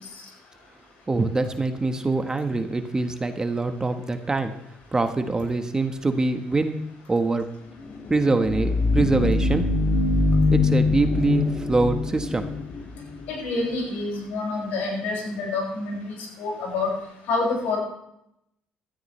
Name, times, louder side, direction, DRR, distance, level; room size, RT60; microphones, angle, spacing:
voice 1, 1.1-4.5 4.9-6.8 7.1-7.5 8.1-9.7 10.5-12.5, right 3 dB, 20° right, 7 dB, 1.2 m, -24 dB
sound 1, 7.8-13.3, left 3 dB, 55° left, 1.6 m, -23 dB
voice 2, 13.3-16.9 17.3-17.8, left 3 dB, 80° left, -2 dB, 6.1 m, -27 dB
16.0 x 13.0 x 3.3 m, 0.81 s
supercardioid pair, 80°, 3 cm